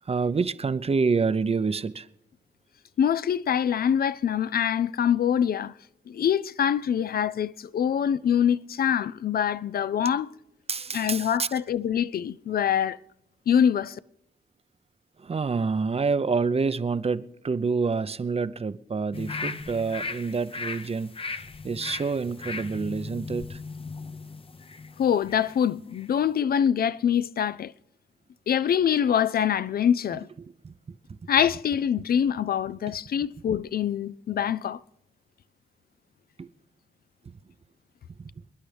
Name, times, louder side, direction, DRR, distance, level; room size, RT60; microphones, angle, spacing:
voice 1, 0.1-2.1 10.7-11.5 15.2-23.6 30.4-30.7 32.9-33.0 36.4-36.5 38.2-38.3, right 4 dB, 35° right, 0.6 m, -28 dB
voice 2, 3.0-5.7 6.1-10.3 10.9-13.0 13.5-14.0 25.0-27.7 28.5-30.3 31.3-34.8, left 8 dB, 60° left, 0.4 m, -24 dB
sound 1, 19.1-25.6 25.9-26.1, left 4 dB, 30° left, 0.7 m, -37 dB
28.5 x 10.5 x 3.4 m
cardioid pair, 70°, 17 cm